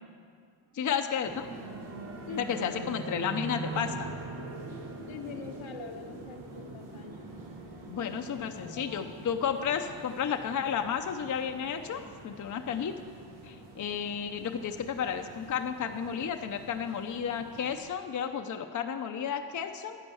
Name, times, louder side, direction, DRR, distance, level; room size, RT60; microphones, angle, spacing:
voice 1, 0.7-1.5 2.4-4.1 7.9-13.0 13.4-20.0, left 7 dB, 40° left, 6 dB, 0.6 m, -32 dB
sound 1, 0.8-6.4, right 4 dB, 30° right, 0.9 m, -41 dB
sound 2, 1.2-17.8, right 2 dB, 85° right, 2.0 m, -46 dB
voice 2, 2.3-2.7 5.1-7.3 8.3-9.1, left 6 dB, 80° left, 5 dB, 1.1 m, -44 dB
11.0 x 9.2 x 7.0 m, 2.1 s
wide cardioid pair, 125°, 46 cm